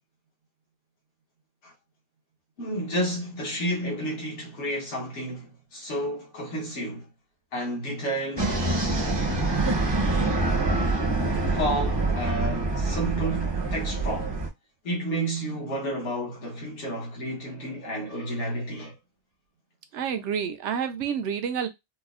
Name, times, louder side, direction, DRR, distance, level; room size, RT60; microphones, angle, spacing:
voice 1, 2.6-7.1 7.5-8.5 11.5-14.4 14.8-18.9, right 1 dB, 85° left, 1.4 m, -31 dB
sound 1, 8.4-14.5, right 2 dB, 30° right, 0.5 m, -25 dB
voice 2, 19.9-21.7, right 7 dB, 85° right, 0.9 m, -29 dB
4.3 x 2.0 x 2.4 m
omnidirectional pair, 1.2 m